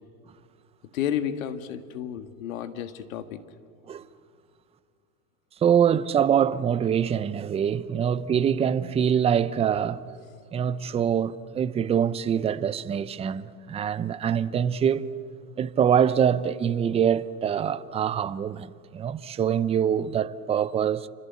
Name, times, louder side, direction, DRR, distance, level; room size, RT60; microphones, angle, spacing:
voice 1, 0.9-3.4, left 9 dB, 70° left, 1.8 m, -31 dB
voice 2, 5.6-10.0 10.5-15.1 15.6-21.1, right 8 dB, 15° right, 0.6 m, -24 dB
28.5 x 24.5 x 8.3 m
hypercardioid pair, 125°, 43 cm